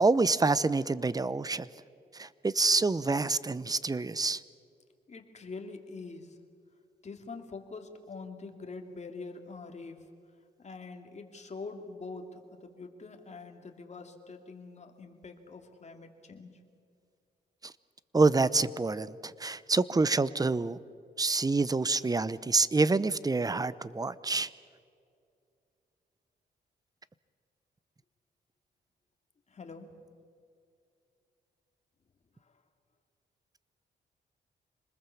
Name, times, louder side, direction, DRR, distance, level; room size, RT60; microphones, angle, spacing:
voice 1, 0.0-1.7 2.2-4.4 18.1-20.8 21.2-24.5, right 3 dB, 20° right, 17 dB, 0.8 m, -27 dB
voice 2, 5.1-6.4 7.0-10.0 10.6-16.6 29.5-29.9 32.4-32.6, left 4 dB, 40° left, 4 dB, 2.8 m, -44 dB
27.0 x 20.5 x 7.1 m, 2.4 s
cardioid pair, 90°, 17 cm